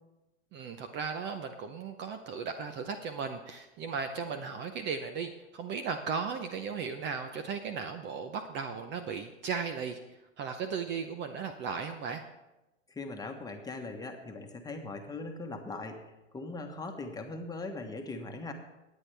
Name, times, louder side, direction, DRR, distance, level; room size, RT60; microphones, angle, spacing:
voice 1, 0.5-12.2, right 5 dB, 30° right, 8 dB, 0.7 m, -36 dB
voice 2, 12.9-18.5, left 3 dB, 10° left, 4 dB, 1.3 m, -40 dB
19.5 x 8.3 x 3.4 m, 1.0 s
hypercardioid pair, 120°, 38 cm